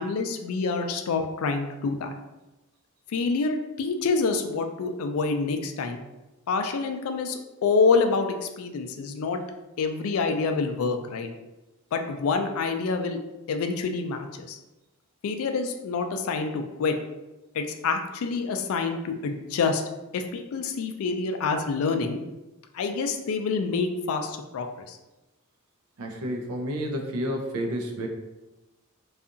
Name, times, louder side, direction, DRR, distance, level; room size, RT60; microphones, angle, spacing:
voice 1, 0.0-2.1 3.1-6.0 6.5-9.4 9.8-11.3 11.9-13.2 13.5-14.6 15.2-17.0 17.5-19.8 20.1-22.2 22.7-25.0, left 4 dB, 75° left, 6 dB, 0.3 m, -27 dB
voice 2, 26.0-28.1, equal, 85° right, 3 dB, 0.5 m, -30 dB
2.7 x 2.4 x 2.4 m, 1.0 s
head